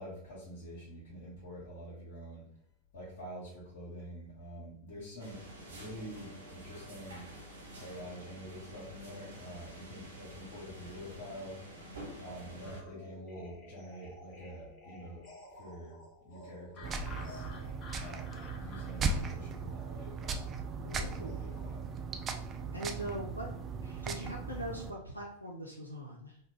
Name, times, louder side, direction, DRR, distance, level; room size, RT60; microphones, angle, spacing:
voice 1, 0.0-2.5 2.9-7.3 7.8-11.6 12.2-15.2 15.5-17.5 18.0-20.5 21.0-21.9, equal, 60° left, -7 dB, 1.0 m, -46 dB
sound 1, 5.2-12.8, right 1 dB, 65° right, 0.7 m, -49 dB
sound 2, 12.6-21.7, left 2 dB, 35° left, 0.8 m, -53 dB
sound 3, 16.8-24.9, right 4 dB, 25° right, 0.3 m, -38 dB
voice 2, 20.8-21.4 22.7-23.5 23.8-26.4, right 1 dB, 90° left, -2 dB, 0.4 m, -42 dB
3.3 x 2.2 x 3.1 m, 0.68 s
figure-of-eight pair, 90°, 0 cm